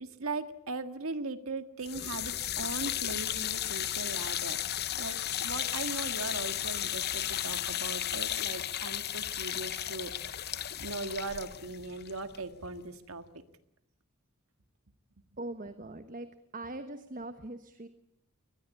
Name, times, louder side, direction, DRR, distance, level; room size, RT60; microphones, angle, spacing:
voice 1, 0.0-4.6 5.0-13.2, right 3 dB, 70° right, 9 dB, 1.8 m, -39 dB
sound 1, 1.8-12.9, left 11 dB, 45° left, 0.9 m, -34 dB
voice 2, 15.4-16.3 16.5-17.9, right 2 dB, 40° right, 10 dB, 1.1 m, -41 dB
23.5 x 20.5 x 8.4 m, 0.78 s
head